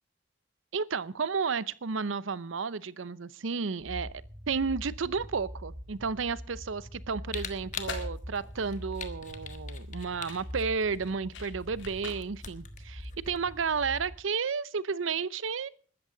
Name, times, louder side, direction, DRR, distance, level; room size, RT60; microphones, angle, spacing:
voice 1, 0.7-4.2 4.5-15.7, right 5 dB, 90° right, 0.7 m, -32 dB
sound 1, 3.8-14.2, equal, 25° right, 2.8 m, -43 dB
Camera, 7.3-14.1, left 6 dB, 40° left, 1.4 m, -44 dB
sound 2, 7.6-13.6, left 5 dB, 80° left, 3.7 m, -47 dB
21.0 x 13.0 x 3.9 m
head